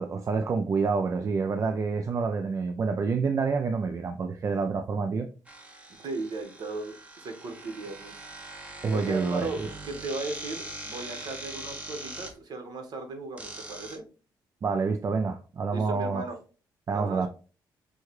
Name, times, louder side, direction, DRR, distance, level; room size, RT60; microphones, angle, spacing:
voice 1, 0.0-5.3 8.8-9.7 14.6-16.2 16.9-17.3, right 4 dB, 40° right, 0.4 m, -28 dB
sound 1, 5.5-12.3 13.4-14.0, right 2 dB, 15° right, 1.0 m, -42 dB
voice 2, 6.0-8.1 8.9-14.0 15.7-16.4 16.9-17.2, right 3 dB, 60° right, 1.2 m, -36 dB
6.2 x 2.3 x 3.1 m
cardioid pair, 100°, 8 cm